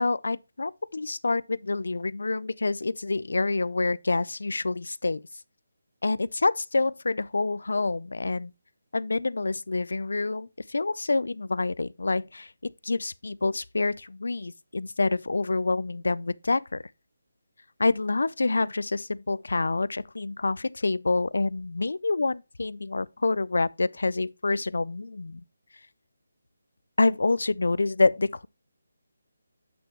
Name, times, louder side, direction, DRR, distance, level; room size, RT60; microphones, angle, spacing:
voice 1, 0.0-5.2 6.0-8.5 8.9-16.8 17.8-25.4 27.0-28.5, left 3 dB, 80° left, 0.3 m, -27 dB
7.9 x 6.7 x 2.9 m
hypercardioid pair, 170°, 0 cm